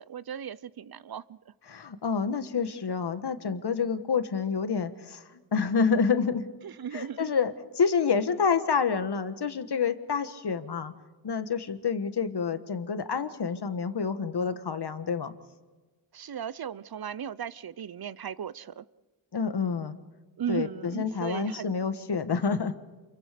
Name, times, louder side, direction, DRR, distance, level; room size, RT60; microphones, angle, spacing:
voice 1, 0.0-1.4 6.6-7.3 16.1-18.8 20.4-21.7, right 9 dB, 50° right, 18 dB, 0.7 m, -36 dB
voice 2, 1.7-5.2 5.5-6.5 6.9-10.9 11.2-15.3 19.3-19.9 20.5-22.7, left 5 dB, 55° left, 10 dB, 1.6 m, -28 dB
28.0 x 23.0 x 5.2 m, 1.2 s
cardioid pair, 75°, 47 cm